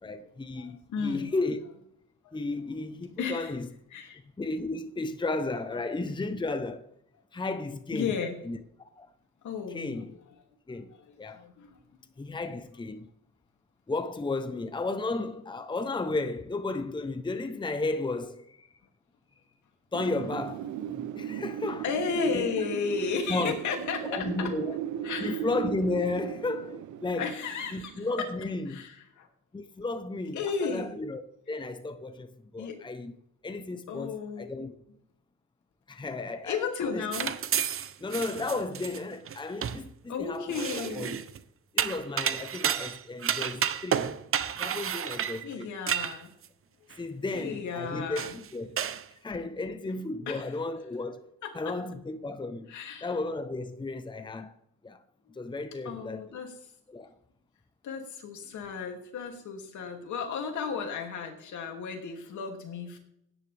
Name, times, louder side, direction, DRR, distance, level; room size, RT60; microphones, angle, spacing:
voice 1, 0.0-1.6 2.3-3.7 4.4-6.9 7.3-8.1 8.5-8.6 9.0-9.1 9.7-10.1 10.7-11.4 12.2-13.1 13.9-18.7 19.9-21.8 22.3-22.5 23.3-23.6 24.0-24.8 25.2-27.3 27.7-28.8 29.5-31.2 31.5-33.1 33.4-34.7 35.9-36.6 36.9-37.0 38.0-41.2 41.7-44.1 44.6-45.7 47.0-48.8 49.2-51.3 51.5-52.7 53.0-54.5 54.8-55.0 55.3-56.2 56.9-57.1, left 3 dB, 15° left, 0.9 m, -33 dB
voice 2, 0.6-1.3 2.2-2.4 3.2-3.5 3.9-4.2 7.9-8.4 9.4-10.2 10.9-11.8 21.8-24.5 25.0-25.4 27.1-28.3 28.7-29.3 30.3-31.0 32.6-32.8 33.9-34.5 36.4-37.4 40.1-41.1 45.4-46.3 46.8-46.9 47.3-48.4 48.6-48.8 50.3-50.5 51.4-51.7 52.7-53.1 55.3-55.4 55.8-56.6 57.8-63.0, left 5 dB, 75° left, 2.8 m, -34 dB
Wind, 19.9-28.6, right 10 dB, 80° right, 1.0 m, -37 dB
sound 1, 37.1-39.9 40.5-41.4 41.8-46.5 46.9-47.0 47.7-47.8 48.2-48.5 48.8-49.0, right 8 dB, 45° right, 0.8 m, -31 dB
17.0 x 9.9 x 3.5 m
cardioid pair, 90°, 30 cm